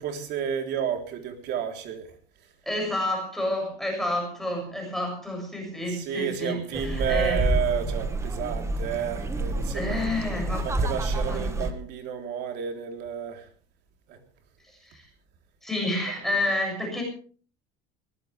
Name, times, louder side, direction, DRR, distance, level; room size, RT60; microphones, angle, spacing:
voice 1, 0.0-2.2 5.9-10.1 10.6-13.5 14.1-14.2, right 8 dB, 60° right, 3.7 m, -31 dB
voice 2, 2.7-7.4 9.7-10.7 11.3-11.7 14.8-15.0 15.6-17.0, left 1 dB, ahead, 7.1 m, -29 dB
sound 1, 6.7-11.7, right 2 dB, 15° right, 1.5 m, -28 dB
20.5 x 19.0 x 3.5 m
cardioid pair, 150°, 19 cm